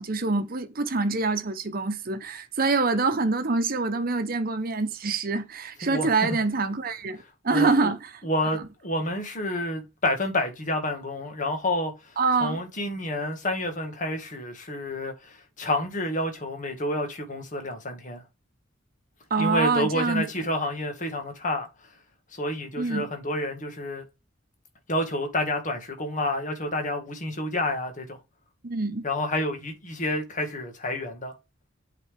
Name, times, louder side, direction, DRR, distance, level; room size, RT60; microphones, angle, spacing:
voice 1, 0.0-8.0 8.4-8.6 12.2-12.6 19.3-20.2 22.8-23.1 28.6-29.0, right 3 dB, 50° right, 0.9 m, -25 dB
voice 2, 7.5-7.9 8.2-18.2 19.4-21.7 22.3-24.0 24.9-28.2 29.0-31.3, left 1 dB, 40° left, 1.8 m, -29 dB
8.2 x 4.2 x 3.4 m
head